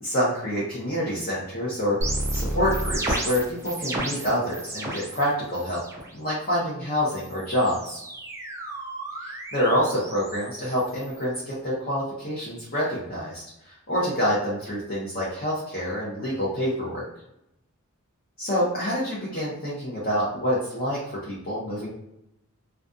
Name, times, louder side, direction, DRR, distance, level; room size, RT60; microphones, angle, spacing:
voice 1, 0.0-2.0 2.3-5.8 6.1-8.0 9.2-17.0 18.4-21.9, equal, 45° left, -7 dB, 0.7 m, -27 dB
sound 1, 2.0-5.2 5.5-6.1 7.1-11.2, right 1 dB, 15° right, 0.3 m, -32 dB
2.4 x 2.3 x 2.5 m, 0.83 s
head